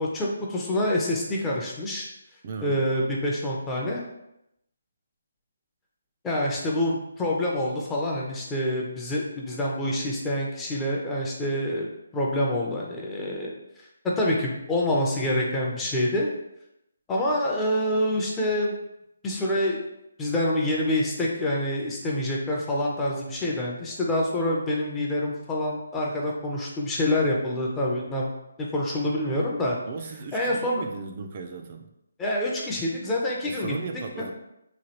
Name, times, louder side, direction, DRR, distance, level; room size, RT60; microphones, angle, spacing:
voice 1, 0.0-2.1 2.6-4.0 6.2-13.5 14.2-16.3 17.1-18.7 19.2-19.8 20.2-28.3 28.6-29.8 30.3-30.8 32.2-33.8, left 1 dB, 10° left, -3 dB, 0.5 m, -26 dB
voice 2, 2.4-2.8 29.9-31.9 33.5-34.3, right 4 dB, 40° right, 4 dB, 0.3 m, -36 dB
3.0 x 2.3 x 2.9 m, 0.84 s
figure-of-eight pair, 155°, 0 cm